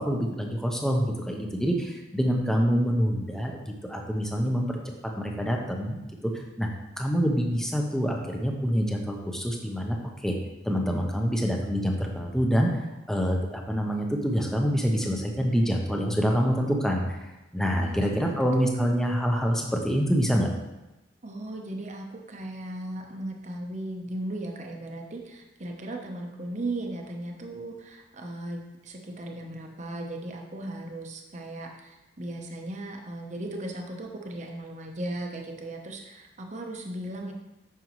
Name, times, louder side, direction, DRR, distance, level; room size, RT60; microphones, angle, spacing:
voice 1, 0.0-4.6 5.2-6.3 6.6-6.7 7.0-10.0 10.2-10.3 10.6-12.7 13.1-17.2 17.5-20.5, equal, 5° left, 1 dB, 0.8 m, -26 dB
voice 2, 18.3-18.9 21.2-37.3, right 1 dB, 40° right, 2 dB, 0.9 m, -37 dB
9.2 x 6.2 x 3.1 m, 1.0 s
head